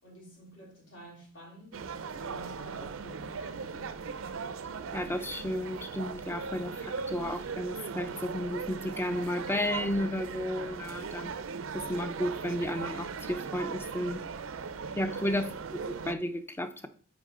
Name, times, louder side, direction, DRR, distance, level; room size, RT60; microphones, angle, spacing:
voice 1, 0.0-1.8 2.2-4.0, right 1 dB, 65° left, 3.4 m, -50 dB
sound 1, 1.7-16.2, right 5 dB, 80° right, 0.5 m, -39 dB
voice 2, 4.9-11.3 11.7-14.2 15.0-16.9, left 1 dB, 10° left, 0.5 m, -33 dB
8.7 x 4.1 x 3.8 m
head